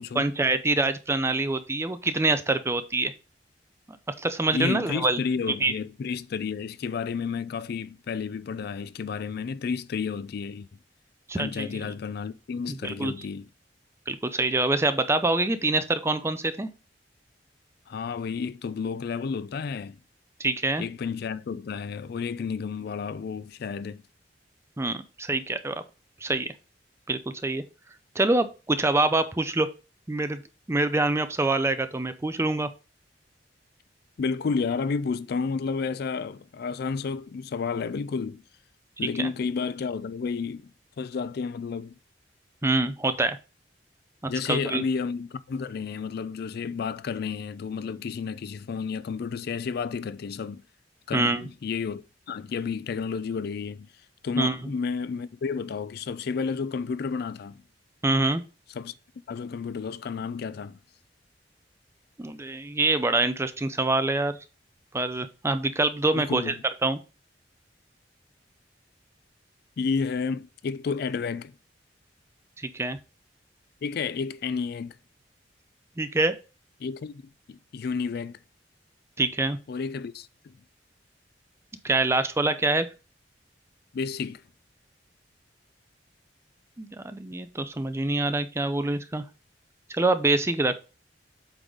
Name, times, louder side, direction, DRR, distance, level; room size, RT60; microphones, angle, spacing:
voice 1, 0.2-3.1 4.2-5.2 5.6-5.7 11.3-11.9 12.7-13.1 14.1-16.7 20.4-20.8 24.8-25.8 26.2-26.5 27.1-27.6 28.1-29.7 30.1-30.4 30.7-32.7 39.2-39.3 42.6-43.4 44.2-44.8 51.1-51.5 54.4-54.5 58.0-58.4 62.2-64.4 64.9-66.5 66.8-67.0 72.6-73.0 76.0-76.3 79.2-79.6 81.8-82.9 86.8-89.2 89.9-90.7, right 2 dB, 15° right, 0.5 m, -25 dB
voice 2, 4.5-10.7 11.3-13.5 17.9-20.0 20.8-24.0 34.2-38.4 39.0-40.7 41.0-41.9 44.3-50.6 51.1-53.9 54.2-57.6 58.7-58.9 59.3-60.8 66.2-66.5 69.8-71.5 73.8-74.9 76.8-77.2 77.5-78.4 79.7-80.5 83.9-84.4, left 5 dB, 60° left, 0.4 m, -31 dB
7.9 x 3.9 x 3.8 m
head